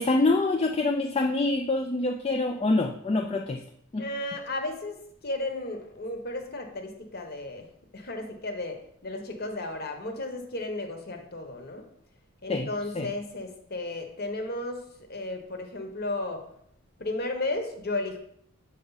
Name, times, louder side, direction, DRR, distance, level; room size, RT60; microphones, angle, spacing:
voice 1, 0.0-3.6 3.9-4.1 12.5-12.7 12.9-13.1, left 2 dB, 25° left, 3 dB, 0.3 m, -25 dB
voice 2, 4.0-7.7 7.9-11.9 12.4-16.4 17.0-18.2, left 2 dB, 45° left, 4 dB, 1.0 m, -34 dB
7.0 x 4.8 x 4.0 m, 0.69 s
head